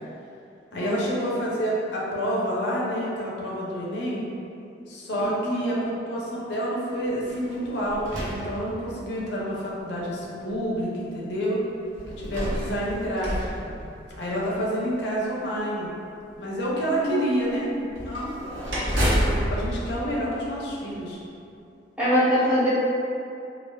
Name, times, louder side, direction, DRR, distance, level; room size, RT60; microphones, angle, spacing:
voice 1, 0.7-4.2 4.9-11.6 12.2-13.3 13.6-13.7 14.2-15.9 16.4-18.3 18.8-21.2, equal, 70° left, -5 dB, 0.6 m, -28 dB
voice 2, 5.1-5.7 16.9-17.4 22.0-22.7, equal, 5° right, -12 dB, 0.8 m, -24 dB
sound 1, 7.2-9.2 10.0-10.1 11.9-14.5 17.9-21.0, equal, 85° right, 0.6 m, -30 dB
3.2 x 2.3 x 2.2 m, 2.6 s
head